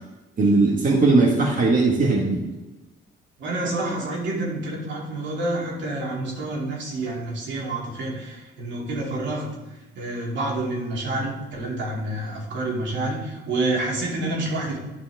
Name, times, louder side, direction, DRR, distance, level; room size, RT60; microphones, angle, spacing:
voice 1, 0.4-2.4, right 3 dB, 45° right, -2 dB, 1.6 m, -19 dB
voice 2, 3.4-14.8, right 2 dB, 70° right, -3 dB, 2.8 m, -28 dB
12.0 x 5.3 x 3.6 m, 1.1 s
cardioid pair, 90°, 20 cm